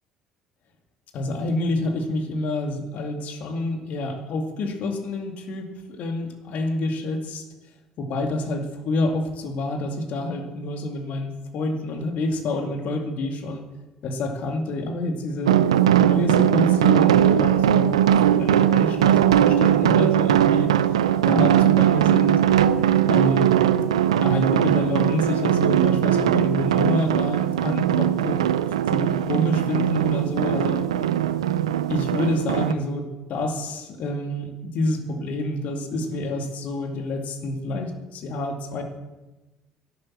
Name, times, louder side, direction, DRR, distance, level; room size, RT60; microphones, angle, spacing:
voice 1, 1.1-7.4 8.0-13.6 14.0-15.6 16.0-18.0 18.4-20.7 21.2-22.4 23.1-23.5 24.2-28.4 28.9-30.9 31.9-38.8, left 2 dB, 55° left, 5 dB, 2.2 m, -27 dB
sound 1, 15.5-32.7, right 10 dB, 80° right, 0.5 m, -20 dB
12.0 x 11.0 x 7.3 m, 1.1 s
hypercardioid pair, 55°, 3 cm